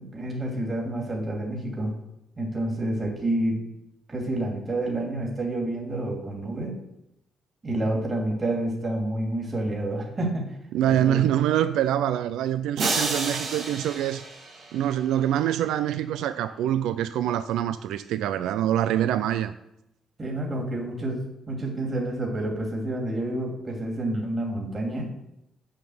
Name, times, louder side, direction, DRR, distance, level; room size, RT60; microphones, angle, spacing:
voice 1, 0.0-1.9 2.4-3.6 4.1-6.7 7.6-10.6 10.9-11.2 20.2-25.1, right 1 dB, 30° right, 2.6 m, -29 dB
voice 2, 10.7-14.2 14.7-19.5, right 11 dB, 85° right, 0.4 m, -25 dB
sound 1, 12.8-15.1, right 3 dB, 60° right, 2.6 m, -30 dB
7.5 x 5.8 x 7.8 m
cardioid pair, 90°, 0 cm